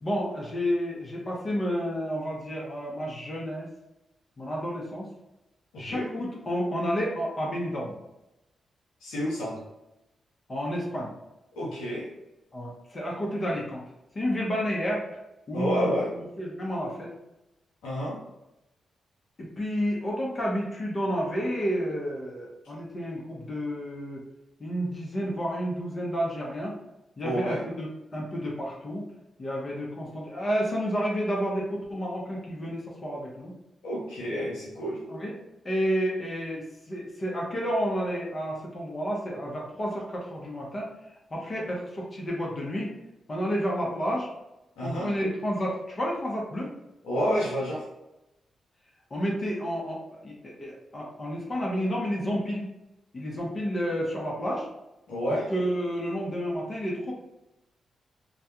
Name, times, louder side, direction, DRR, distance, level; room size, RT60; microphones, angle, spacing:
voice 1, 0.0-3.7 4.4-5.1 5.8-8.0 10.5-11.1 12.5-13.8 14.1-15.0 15.5-16.0 16.4-17.1 19.4-24.2 24.6-26.7 27.2-29.0 29.4-33.5 35.1-35.3 35.6-40.9 41.3-42.9 43.3-44.3 44.8-46.7 49.1-52.7 53.1-54.7 55.3-57.1, equal, 45° left, -3 dB, 0.7 m, -30 dB
voice 2, 5.7-6.1 9.0-9.6 11.6-12.1 15.5-16.1 17.8-18.2 27.2-27.6 33.8-35.0 41.6-41.7 44.8-45.1 47.0-47.8 55.1-55.5, equal, 85° left, -6 dB, 0.7 m, -29 dB
2.3 x 2.2 x 2.8 m, 0.93 s
supercardioid pair, 45°, 0 cm